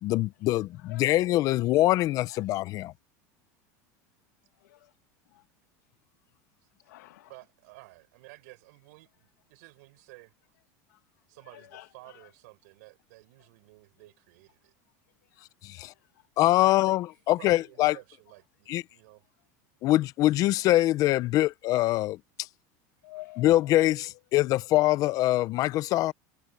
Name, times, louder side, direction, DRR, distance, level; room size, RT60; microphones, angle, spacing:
voice 1, 0.0-2.9 15.6-15.9 16.4-18.0 18.7-18.8 19.8-22.2 23.4-26.1, left 16 dB, 40° left, 0.6 m, -24 dB
voice 2, 0.8-1.1 2.3-2.4 4.6-4.9 5.3-5.4 6.8-7.3 10.9-11.0 11.5-12.2 15.4-15.5 15.8-16.0 23.0-23.7, left 18 dB, 90° left, 2.1 m, -49 dB
voice 3, 7.2-10.3 11.3-14.7 16.6-17.0 17.4-19.3, right 24 dB, 70° right, 4.8 m, -52 dB
supercardioid pair, 145°, 9 cm